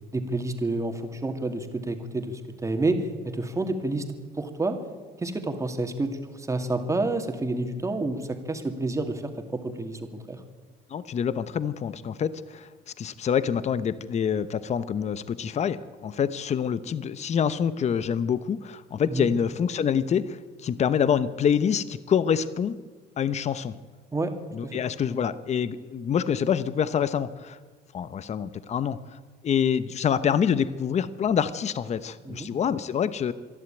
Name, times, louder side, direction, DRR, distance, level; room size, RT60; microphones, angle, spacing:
voice 1, 0.1-4.1 4.4-4.8 5.2-10.4 19.1-19.3 24.1-24.3 24.6-24.7 32.2-32.5, right 2 dB, 20° right, 6 dB, 2.5 m, -29 dB
voice 2, 10.9-12.7 13.0-22.8 23.2-23.8 24.5-27.6 27.9-29.0 29.4-33.3, left 8 dB, 40° left, 14 dB, 0.9 m, -26 dB
26.0 x 11.0 x 9.1 m, 1.4 s
cardioid pair, 110°, 17 cm